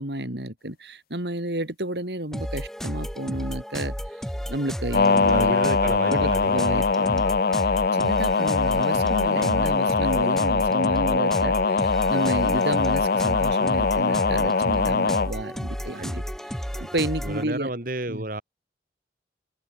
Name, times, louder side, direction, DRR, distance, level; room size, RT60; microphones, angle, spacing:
voice 1, 0.0-3.9 4.5-5.6 6.1-7.3 7.6-16.2 16.8-17.7 18.1-18.3, right 1 dB, 70° right, 4.3 m, -31 dB
sound 1, 2.3-17.4, equal, ahead, 1.8 m, -33 dB
sound 2, 4.9-15.3, left 4 dB, 55° left, 0.6 m, -22 dB
voice 2, 5.2-6.6 16.0-16.2 16.8-16.9 17.2-18.4, right 1 dB, 50° right, 2.9 m, -31 dB
head